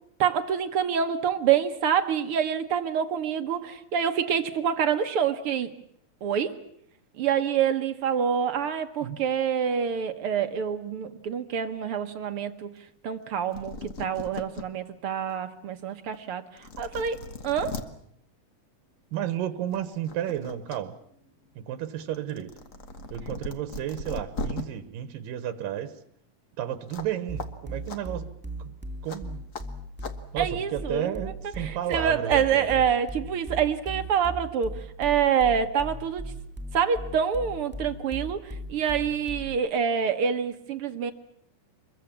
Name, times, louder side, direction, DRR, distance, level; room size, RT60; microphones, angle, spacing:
voice 1, 0.2-5.7 6.2-6.6 7.2-12.7 13.0-17.2 17.4-17.8 30.4-31.1 31.6-36.3 36.7-41.1, right 7 dB, 65° right, 8 dB, 1.4 m, -26 dB
sound 1, 13.3-13.4 13.5-14.6 15.2-15.3 16.1-16.2 16.6-17.8 19.1-19.3 19.7-20.8 21.1-24.6 26.9-27.1 27.4-27.5 27.9-28.0 29.1-29.2 29.5-29.6 30.0-30.1, left 3 dB, 65° left, 0.7 m, -37 dB
voice 2, 19.1-21.0 21.6-22.5 23.1-25.9 26.6-28.3 28.6-28.7 29.0-29.4 30.3-32.8, right 11 dB, 90° right, 11 dB, 2.9 m, -32 dB
sound 2, 27.3-39.7, right 1 dB, 5° right, 2.1 m, -37 dB
25.5 x 22.5 x 7.3 m, 0.69 s
omnidirectional pair, 3.8 m